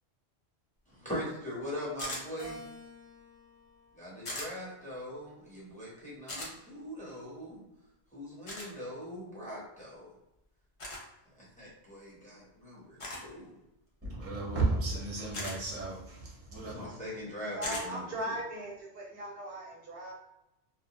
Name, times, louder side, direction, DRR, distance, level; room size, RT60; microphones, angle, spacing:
voice 1, 0.9-2.6 3.9-7.6 8.1-10.1 11.4-13.6 16.6-18.4, equal, 5° left, -7 dB, 0.9 m, -41 dB
sound 1, 2.0-2.2 4.2-4.5 6.3-6.5 8.5-8.7 10.8-11.0 13.0-13.3 15.3-15.6 17.6-17.9, left 1 dB, 35° left, 0.6 m, -38 dB
Keyboard (musical), 2.4-4.9 5.5-6.7, left 1 dB, 80° left, 1.1 m, -52 dB
voice 2, 14.0-16.9, right 2 dB, 15° right, -4 dB, 0.7 m, -33 dB
voice 3, 17.5-20.1, right 1 dB, 65° right, -2 dB, 0.7 m, -38 dB
2.5 x 2.1 x 2.9 m, 0.87 s
omnidirectional pair, 1.1 m